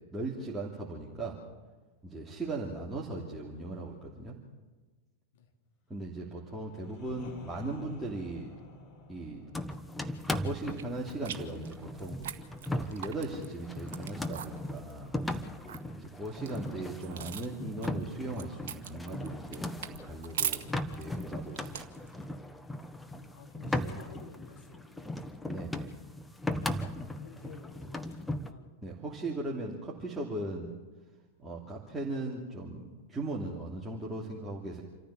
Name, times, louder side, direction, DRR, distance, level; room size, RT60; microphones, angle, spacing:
voice 1, 0.1-1.4 2.0-4.4 5.9-8.5 9.1-9.5 10.4-15.1 16.0-21.9 25.5-25.9 28.8-30.7 31.4-34.8, right 2 dB, 10° right, -4 dB, 2.9 m, -38 dB
sound 1, 6.2-11.9, left 2 dB, 35° left, 6.5 m, -52 dB
sound 2, 9.5-28.5, left 1 dB, 5° left, 1.2 m, -38 dB
sound 3, 10.6-22.3, right 9 dB, 55° right, 1.3 m, -42 dB
voice 2, 23.1-25.2 26.8-28.8, left 6 dB, 55° left, 3 dB, 3.1 m, -52 dB
28.0 x 14.0 x 7.1 m, 1.3 s
figure-of-eight pair, 90°, 0 cm